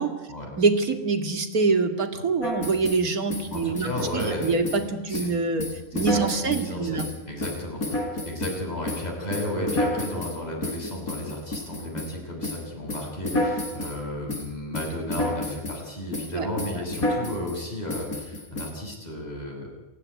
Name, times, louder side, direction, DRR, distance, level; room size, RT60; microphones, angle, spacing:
voice 1, 0.6-5.7 5.9-7.1 16.3-16.5, right 4 dB, 90° right, 8 dB, 2.7 m, -25 dB
sound 1, 2.4-3.0 3.3-4.8 5.1-5.3 5.6-6.7 7.0-8.6 8.9-12.1 12.4-12.6 12.9-14.0 14.3-14.5 14.7-15.8 16.1-16.3 16.6-17.6 17.9-18.7, left 1 dB, 80° left, 4.5 m, -30 dB
voice 2, 3.5-4.6 5.1-5.3 5.9-19.7, left 1 dB, 30° left, -1 dB, 6.8 m, -33 dB
28.0 x 15.0 x 9.7 m, 1.1 s
omnidirectional pair, 1.5 m